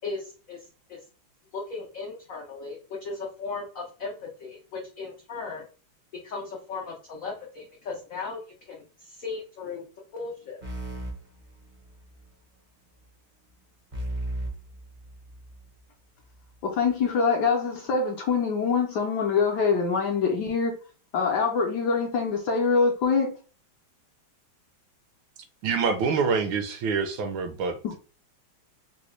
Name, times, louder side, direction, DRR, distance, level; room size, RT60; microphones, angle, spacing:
voice 1, 0.0-1.0 1.5-5.6 6.2-8.4 8.7-9.8 10.1-10.6, left 4 dB, 90° left, 0.7 m, -37 dB
sound 1, 10.6-12.2 13.9-15.7, right 1 dB, 50° right, 0.5 m, -36 dB
voice 2, 16.6-20.8 21.1-23.3, left 5 dB, 75° left, 1.0 m, -24 dB
voice 3, 25.6-28.0, right 5 dB, 75° right, 1.3 m, -26 dB
3.9 x 2.1 x 3.0 m
omnidirectional pair, 2.3 m